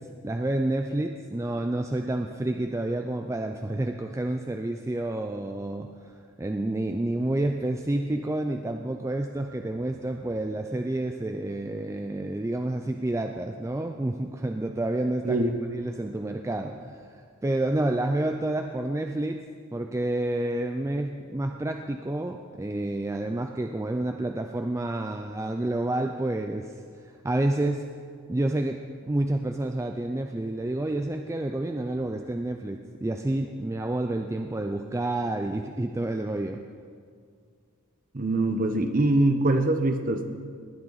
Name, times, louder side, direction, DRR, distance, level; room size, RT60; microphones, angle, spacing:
voice 1, 0.0-19.4 19.7-27.9 28.3-36.6, right 1 dB, 15° right, 5 dB, 0.3 m, -29 dB
voice 2, 15.2-15.6 38.1-40.3, right 2 dB, 40° right, 7 dB, 0.8 m, -23 dB
19.5 x 9.7 x 4.0 m, 2.1 s
head